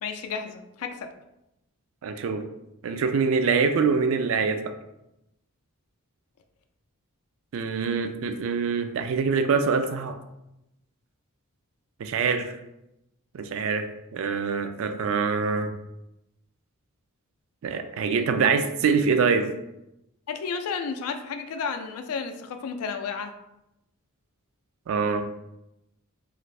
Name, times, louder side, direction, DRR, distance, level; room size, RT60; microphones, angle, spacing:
voice 1, 0.0-1.1 20.3-23.3, left 5 dB, 80° left, 6 dB, 0.3 m, -32 dB
voice 2, 2.0-2.4 2.8-4.6 7.5-10.2 12.0-12.6 13.3-13.8 14.1-15.7 17.6-19.5 24.9-25.2, right 5 dB, 65° right, 8 dB, 0.3 m, -24 dB
2.5 x 2.4 x 3.2 m, 0.89 s
head